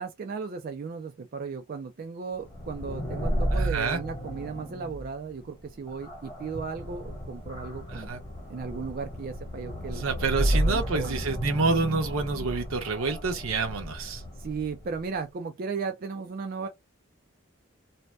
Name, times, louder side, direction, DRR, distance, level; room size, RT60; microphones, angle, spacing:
voice 1, 0.0-8.1 8.5-10.0 10.4-11.2 14.4-16.7, right 5 dB, 45° right, 0.3 m, -36 dB
sound 1, 2.4-15.0, equal, 25° left, 1.1 m, -32 dB
voice 2, 3.5-4.0 7.9-8.2 10.0-14.2, right 3 dB, 80° right, 0.8 m, -28 dB
2.6 x 2.1 x 3.2 m
head